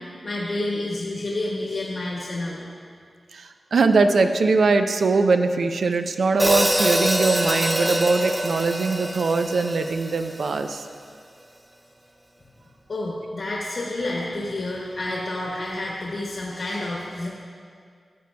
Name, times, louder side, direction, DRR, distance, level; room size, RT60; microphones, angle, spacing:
voice 1, 0.0-2.7 12.9-17.3, left 2 dB, 60° left, -5 dB, 1.3 m, -29 dB
voice 2, 3.3-10.8, right 3 dB, 75° right, 7 dB, 0.4 m, -21 dB
Hi-hat, 6.4-10.6, equal, 10° right, 0.4 m, -24 dB
13.5 x 7.9 x 2.3 m, 2.1 s
wide cardioid pair, 125°, 0 cm